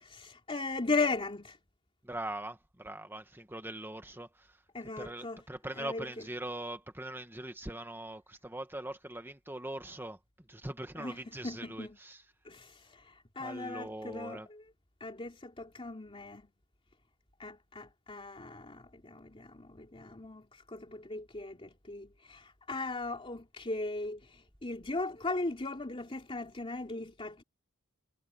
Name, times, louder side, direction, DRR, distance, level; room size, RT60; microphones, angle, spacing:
voice 1, 0.0-1.6 4.7-5.4 5.8-6.3 11.0-11.2 11.4-12.0 12.4-14.6 15.0-16.5 17.4-27.4, left 3 dB, 25° left, 3.2 m, -38 dB
voice 2, 2.0-4.6 5.0-10.2 10.5-12.2 13.4-14.5, right 1 dB, 10° right, 1.4 m, -41 dB
head